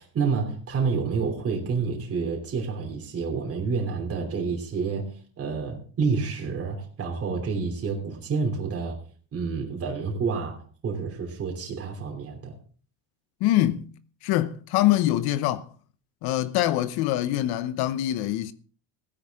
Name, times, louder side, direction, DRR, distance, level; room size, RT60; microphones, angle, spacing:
voice 1, 0.0-5.1 5.4-9.0 9.3-12.6, right 5 dB, 40° right, 3.1 m, -29 dB
voice 2, 13.4-13.9 14.2-15.7 16.2-18.5, left 14 dB, 80° left, 0.9 m, -24 dB
15.5 x 10.5 x 3.6 m
cardioid pair, 130°, 37 cm